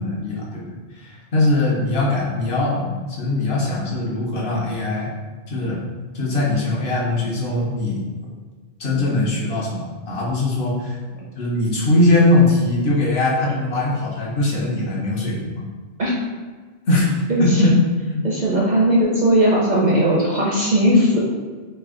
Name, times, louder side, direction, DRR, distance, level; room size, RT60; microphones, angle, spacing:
voice 1, 0.0-5.1 5.5-5.8 6.1-8.0 8.8-11.0 11.4-15.6 16.9-17.7 18.0-18.2, left 2 dB, 60° left, -4 dB, 1.0 m, -21 dB
voice 2, 17.3-17.6 18.2-21.2, equal, 50° right, -4 dB, 0.6 m, -18 dB
3.3 x 2.5 x 3.6 m, 1.4 s
omnidirectional pair, 1.2 m